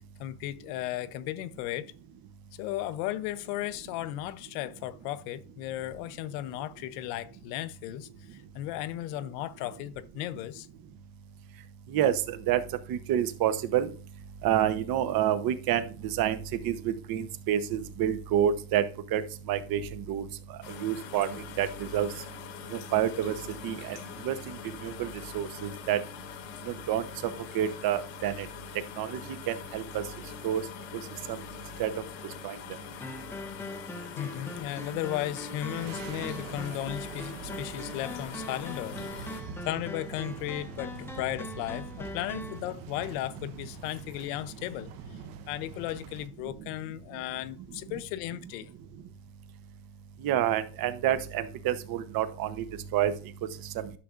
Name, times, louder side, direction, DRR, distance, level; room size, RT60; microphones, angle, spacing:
voice 1, 0.0-1.9 2.6-10.7 34.2-44.9 45.5-48.7, left 14 dB, 85° left, 0.7 m, -35 dB
voice 2, 11.9-12.6 12.9-13.9 14.4-16.4 16.6-18.8 19.1-19.2 19.5-20.3 20.8-21.3 21.6-22.1 22.7-23.3 23.6-24.0 24.2-24.4 24.8-25.1 25.3-26.0 26.7-27.1 27.5-28.5 29.0-29.2 29.5-30.0 30.4-30.6 31.8-31.9 32.4-32.6 50.2-52.6 52.9-53.1 53.8-53.9, right 10 dB, 50° right, 0.9 m, -28 dB
sound 1, 20.6-39.4, left 8 dB, 70° left, 1.2 m, -44 dB
sound 2, 33.0-42.6, left 2 dB, 5° left, 0.4 m, -42 dB
sound 3, 34.4-35.1 35.6-46.3, right 6 dB, 75° right, 1.2 m, -45 dB
11.0 x 6.7 x 2.5 m
cardioid pair, 140°, 47 cm